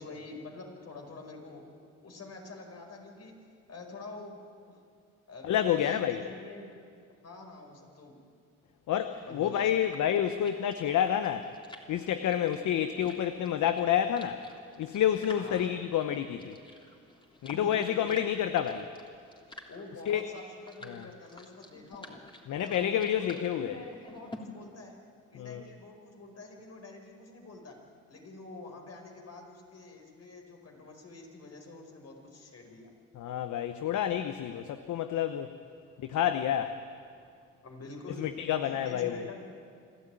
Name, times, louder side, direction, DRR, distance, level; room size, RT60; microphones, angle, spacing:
voice 1, 0.0-1.7 2.0-3.4 3.7-4.4 4.7-4.8 5.3-6.7 7.2-8.1 9.2-9.7 15.4-15.7 17.5-18.2 19.7-22.2 22.5-25.0 25.3-27.8 28.1-32.9 37.6-38.3 38.6-39.4, left 3 dB, 55° left, 2 dB, 5.1 m, -46 dB
voice 2, 5.4-6.2 8.9-11.5 11.9-14.4 14.8-16.6 17.4-18.9 20.1-20.2 20.9-21.1 22.5-23.8 25.3-25.6 33.1-35.5 36.0-36.8 38.2-39.3, left 10 dB, 70° left, 9 dB, 1.0 m, -29 dB
sound 1, 9.1-24.4, left 1 dB, 15° left, 3.3 m, -52 dB
27.0 x 13.0 x 9.2 m, 2.2 s
supercardioid pair, 65°, 31 cm